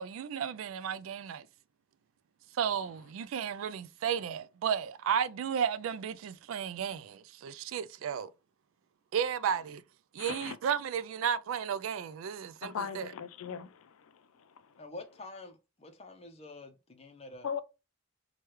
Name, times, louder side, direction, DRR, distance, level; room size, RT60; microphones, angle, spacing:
voice 1, 0.0-1.5 2.5-8.3 9.1-9.8 10.1-13.1, right 8 dB, 70° right, 0.3 m, -33 dB
voice 2, 10.2-10.6 12.6-13.9 17.4-17.6, left 7 dB, 75° left, 0.4 m, -38 dB
voice 3, 14.8-17.5, left 2 dB, 30° left, 0.6 m, -47 dB
4.6 x 2.3 x 3.1 m
head